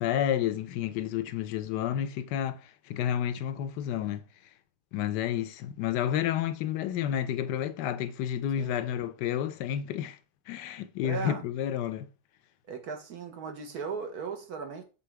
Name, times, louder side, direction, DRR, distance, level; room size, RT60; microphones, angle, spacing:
voice 1, 0.0-4.2 4.9-10.2 10.5-12.1, left 10 dB, 75° left, 1.2 m, -30 dB
voice 2, 11.0-11.4 12.7-14.8, right 5 dB, 60° right, 1.5 m, -37 dB
6.9 x 3.8 x 4.6 m
omnidirectional pair, 2.0 m